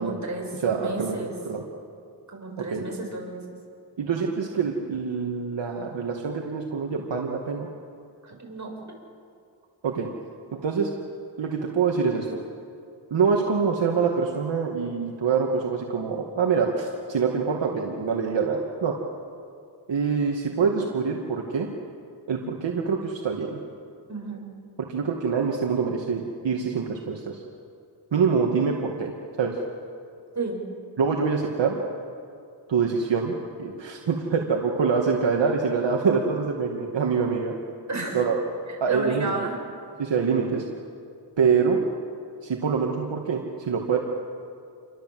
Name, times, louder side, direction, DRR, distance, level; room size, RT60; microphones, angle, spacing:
voice 1, 0.0-1.3 2.3-3.5 8.2-8.8 24.1-24.5 30.3-30.6 37.9-38.2 38.7-39.6, right 3 dB, 40° right, 1 dB, 7.5 m, -32 dB
voice 2, 0.6-1.2 1.5-1.6 2.6-2.8 4.0-7.7 9.8-10.1 10.5-10.9 11.4-12.4 13.1-19.0 19.9-21.7 22.3-23.6 24.8-27.4 28.1-29.1 29.4-29.6 31.0-31.7 32.7-37.5 38.1-38.4 38.8-39.3 40.0-40.6 41.4-41.8 42.4-44.0, right 5 dB, 70° right, 0 dB, 2.3 m, -25 dB
29.0 x 24.0 x 7.9 m, 2.4 s
cardioid pair, 80°, 45 cm